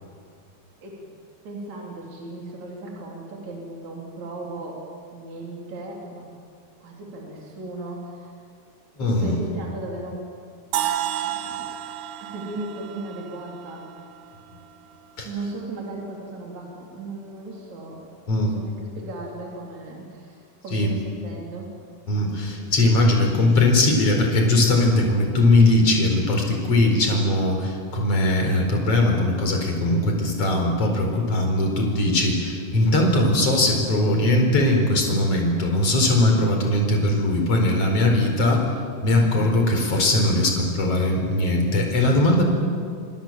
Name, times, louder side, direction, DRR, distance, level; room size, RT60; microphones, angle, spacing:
voice 1, 1.4-6.3 6.8-8.3 9.0-10.3 10.7-10.9 11.2-11.7 12.2-14.0 15.2-18.1 18.3-21.7, right 2 dB, 50° right, -1 dB, 4.8 m, -36 dB
voice 2, 9.0-9.4 15.2-15.3 18.3-18.5 20.7-20.9 22.1-38.7 39.0-42.4, left 1 dB, 40° left, 2 dB, 5.3 m, -20 dB
sound 1, 10.7-14.6, right 11 dB, 65° right, 2.5 m, -31 dB
29.5 x 25.5 x 7.6 m, 2.2 s
omnidirectional pair, 4.1 m